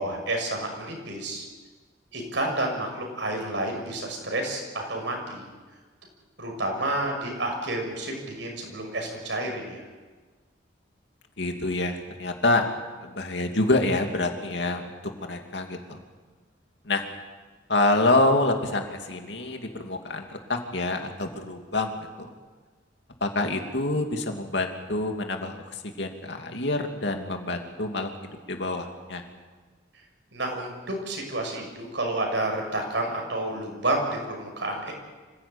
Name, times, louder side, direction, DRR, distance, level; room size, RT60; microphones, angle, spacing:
voice 1, 0.0-1.4 2.1-5.5 6.4-9.8 30.3-34.9, right 1 dB, 70° right, 2 dB, 6.3 m, -30 dB
voice 2, 11.4-12.7 13.0-16.0 16.8-17.0 17.7-21.9 22.2-22.3 23.2-28.1 28.5-29.2, left 2 dB, 65° left, 4 dB, 2.6 m, -27 dB
25.5 x 16.5 x 8.9 m, 1.4 s
head